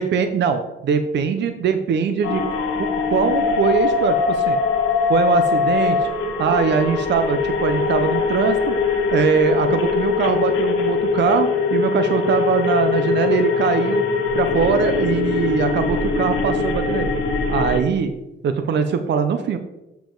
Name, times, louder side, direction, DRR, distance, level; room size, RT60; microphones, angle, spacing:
voice 1, 0.0-2.4 2.8-4.6 5.1-6.1 6.4-8.8 9.1-14.0 14.3-17.1 17.5-18.1 18.4-19.6, right 6 dB, 60° right, 9 dB, 0.7 m, -21 dB
sound 1, 2.2-17.8, left 5 dB, 90° left, 1.3 m, -21 dB
7.0 x 6.9 x 3.9 m, 0.95 s
cardioid pair, 90°, 20 cm